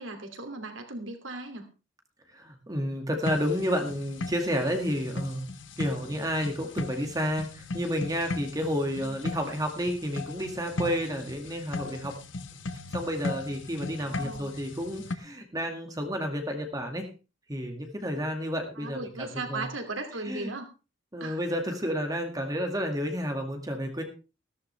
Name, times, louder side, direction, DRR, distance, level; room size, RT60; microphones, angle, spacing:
voice 1, 0.0-1.7 9.0-9.1 14.0-14.5 18.8-20.7 21.2-21.4, right 2 dB, 90° right, 6 dB, 2.8 m, -37 dB
voice 2, 2.3-5.5 5.8-12.1 12.9-17.1 17.5-19.7 20.3-20.5 21.1-24.0, equal, 20° right, 4 dB, 2.1 m, -31 dB
sound 1, 3.2-15.2, left 2 dB, 75° left, 1.3 m, -38 dB
14.5 x 13.5 x 3.4 m, 0.31 s
head